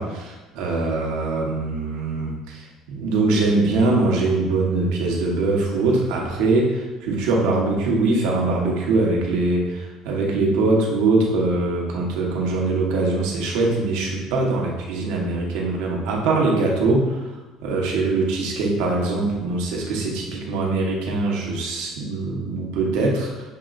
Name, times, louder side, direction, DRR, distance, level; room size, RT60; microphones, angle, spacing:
voice 1, 0.0-17.4 17.6-23.5, right 3 dB, 85° right, -1 dB, 1.0 m, -22 dB
6.5 x 2.9 x 2.5 m, 1.1 s
cardioid pair, 130°, 0 cm